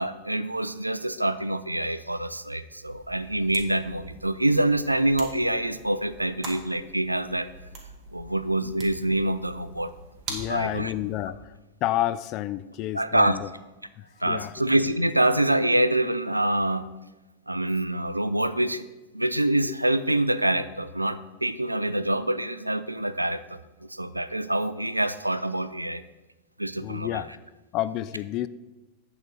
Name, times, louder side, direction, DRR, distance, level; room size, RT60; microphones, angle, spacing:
voice 1, 0.0-7.5 8.1-9.9 10.5-10.9 12.9-13.4 14.2-16.9 17.5-18.8 19.1-26.0 26.6-27.2, right 1 dB, 85° right, 14 dB, 0.3 m, -26 dB
sound 1, 2.8-11.3, right 3 dB, 30° right, 1.6 m, -44 dB
voice 2, 10.3-11.5 11.8-13.5 14.0-14.5 26.8-27.4 27.7-28.5, left 14 dB, 40° left, 14 dB, 0.3 m, -30 dB
8.6 x 4.0 x 6.3 m, 1.1 s
figure-of-eight pair, 90°, 0 cm